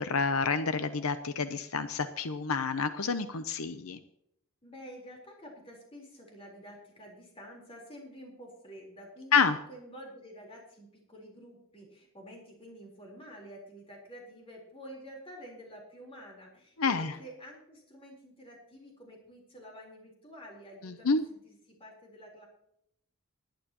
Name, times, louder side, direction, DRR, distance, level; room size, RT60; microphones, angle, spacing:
voice 1, 0.0-4.0 9.3-9.6 16.8-17.2 20.8-21.2, left 5 dB, 80° left, 10 dB, 0.7 m, -28 dB
voice 2, 4.6-21.5 21.8-22.5, equal, 25° left, -1 dB, 4.0 m, -49 dB
20.0 x 11.5 x 3.0 m, 0.77 s
head